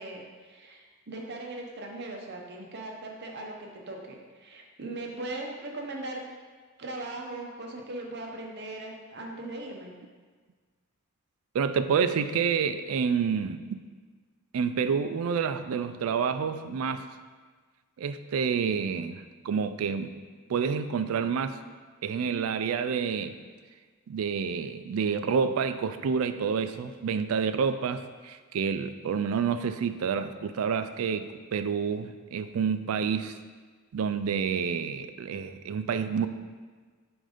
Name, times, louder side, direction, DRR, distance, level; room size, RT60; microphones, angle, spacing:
voice 1, 0.0-6.2 6.8-9.9, right 2 dB, 50° right, 1 dB, 0.8 m, -39 dB
voice 2, 11.5-13.8 14.5-17.1 18.0-20.1 20.5-21.6 22.0-23.3 24.1-33.4 33.9-36.3, right 6 dB, 75° right, 11 dB, 0.4 m, -28 dB
7.4 x 2.6 x 5.0 m, 1.5 s
head